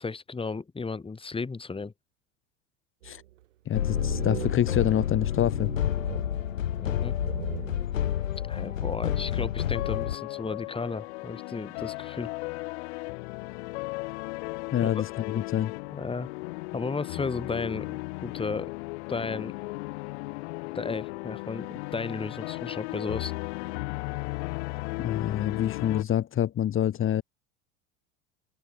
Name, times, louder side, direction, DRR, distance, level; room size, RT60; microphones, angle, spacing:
voice 1, 0.0-1.9 6.8-7.1 8.4-12.3 14.8-14.9 15.9-16.3 16.7-18.7 19.1-19.6 20.7-23.3, left 4 dB, 15° left, 3.0 m, -34 dB
sound 1, 3.0-3.4 3.8-5.3 5.5-6.8 7.2-8.2, right 14 dB, 65° right, 4.2 m, -40 dB
sound 2, 3.7-10.2, left 10 dB, 70° left, 3.8 m, -29 dB
voice 2, 3.7-5.7 14.7-15.7 25.0-27.2, left 10 dB, 30° left, 2.3 m, -27 dB
sound 3, 9.6-26.0, left 26 dB, 55° left, 2.4 m, -36 dB
open air
figure-of-eight pair, 80°, 40 cm